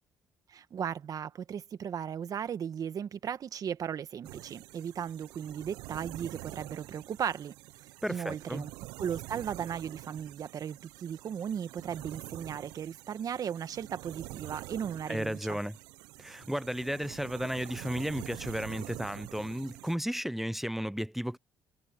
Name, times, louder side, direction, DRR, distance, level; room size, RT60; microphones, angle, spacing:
voice 1, 0.5-7.5 8.1-8.7 9.0-15.6, right 8 dB, 55° right, 1.6 m, -36 dB
sound 1, 4.2-20.0, right 20 dB, 90° right, 0.7 m, -46 dB
voice 2, 8.0-8.7 15.1-15.8 16.2-21.4, equal, 5° right, 0.6 m, -34 dB
supercardioid pair, 65°, 7 cm